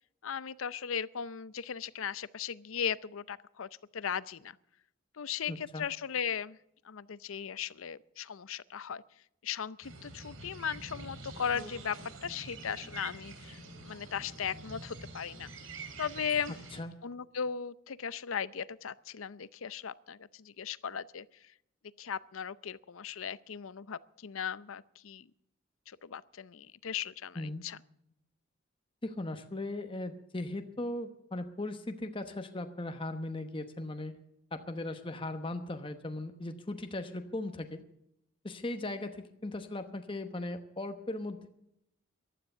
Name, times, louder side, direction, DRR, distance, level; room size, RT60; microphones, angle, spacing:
voice 1, 0.2-4.6 5.2-6.6 6.8-9.0 9.4-15.5 16.0-16.6 17.0-21.3 22.0-25.3 25.9-27.8, left 7 dB, 80° left, 18 dB, 0.6 m, -37 dB
voice 2, 5.5-5.9 16.7-16.9 27.4-27.6 29.0-34.1 34.5-37.8 38.4-41.5, left 2 dB, 25° left, 7 dB, 1.0 m, -38 dB
sound 1, 9.8-16.8, right 3 dB, 75° right, 3.0 m, -46 dB
15.0 x 12.5 x 6.6 m, 0.79 s
head